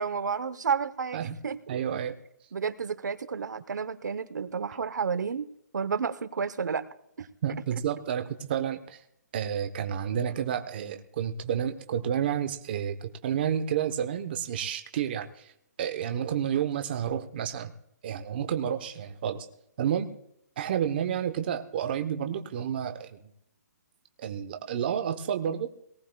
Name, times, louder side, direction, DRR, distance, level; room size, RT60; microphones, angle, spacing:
voice 1, 0.0-1.8 2.5-5.5 5.7-6.8, right 6 dB, 90° right, 13 dB, 0.9 m, -31 dB
voice 2, 1.7-2.1 7.4-9.0 9.3-15.5 15.8-17.7 18.0-19.5 19.8-20.1 20.6-23.1 24.2-25.7, right 9 dB, 35° right, 7 dB, 0.9 m, -30 dB
22.5 x 18.5 x 2.3 m, 0.76 s
hypercardioid pair, 170°, 9 cm